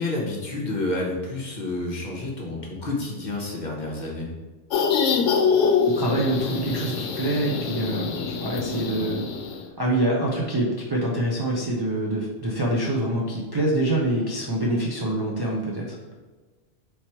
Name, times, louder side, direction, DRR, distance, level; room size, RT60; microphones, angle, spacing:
voice 1, 0.0-4.3, left 2 dB, 40° left, -2 dB, 0.9 m, -29 dB
sound 1, 4.7-9.6, left 5 dB, 80° left, 0.9 m, -24 dB
voice 2, 5.9-9.2 9.8-16.0, right 1 dB, 40° right, -3 dB, 0.3 m, -25 dB
3.5 x 2.9 x 4.4 m, 1.3 s
omnidirectional pair, 1.2 m